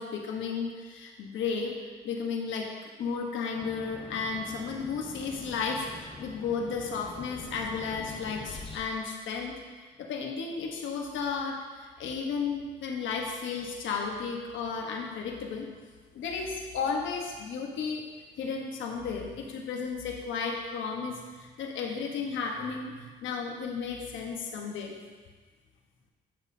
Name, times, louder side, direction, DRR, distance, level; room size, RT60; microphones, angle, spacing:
voice 1, 0.0-1.8 2.0-2.7 3.0-15.7 16.1-18.0 18.4-24.9, left 5 dB, 75° left, 0 dB, 1.2 m, -33 dB
sound 1, 3.6-8.8, left 3 dB, 25° left, 1.0 m, -45 dB
8.9 x 7.3 x 2.8 m, 1.4 s
cardioid pair, 90°, 20 cm